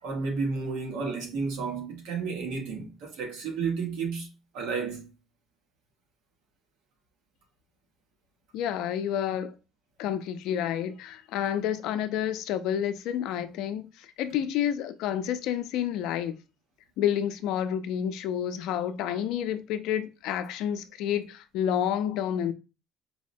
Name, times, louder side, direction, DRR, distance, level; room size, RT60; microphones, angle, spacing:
voice 1, 0.0-4.3 4.5-5.1, right 5 dB, 85° right, 1.2 m, -32 dB
voice 2, 8.5-9.5 10.0-16.3 17.0-22.5, left 10 dB, 75° left, 0.4 m, -29 dB
4.7 x 2.1 x 2.6 m
cardioid pair, 125°, 0 cm